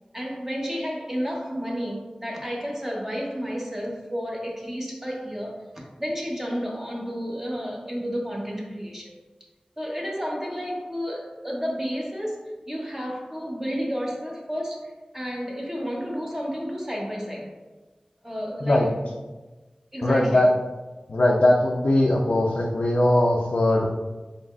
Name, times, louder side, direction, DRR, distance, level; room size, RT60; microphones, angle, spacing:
voice 1, 0.1-9.2 9.8-17.5 18.2-19.1 19.9-20.4, equal, 15° right, -2 dB, 0.9 m, -31 dB
voice 2, 20.0-20.5 21.1-23.9, left 1 dB, 65° left, -3 dB, 0.4 m, -20 dB
4.0 x 3.1 x 2.4 m, 1.2 s
wide cardioid pair, 50°, 2 cm